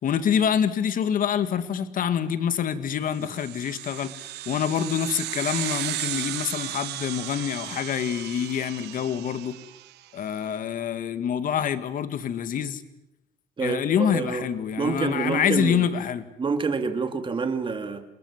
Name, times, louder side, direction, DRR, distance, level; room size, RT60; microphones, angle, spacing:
voice 1, 0.0-9.6 10.1-12.8 13.6-16.3, left 8 dB, 55° left, 12 dB, 2.0 m, -26 dB
sound 1, 3.2-10.0, right 16 dB, 80° right, 1.0 m, -35 dB
voice 2, 13.6-14.4 14.8-15.9 16.4-18.0, right 4 dB, 30° right, 8 dB, 2.8 m, -27 dB
28.0 x 21.0 x 7.3 m, 0.89 s
cardioid pair, 110°, 17 cm